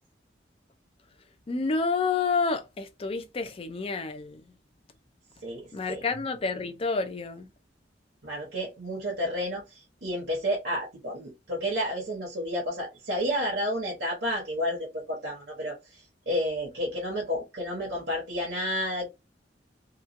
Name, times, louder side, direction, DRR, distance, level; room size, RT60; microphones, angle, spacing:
voice 1, 1.5-4.4 5.7-7.5, left 4 dB, 30° left, 0.4 m, -29 dB
voice 2, 5.4-6.0 8.2-19.1, equal, 55° right, 0.9 m, -31 dB
3.0 x 2.3 x 2.5 m
head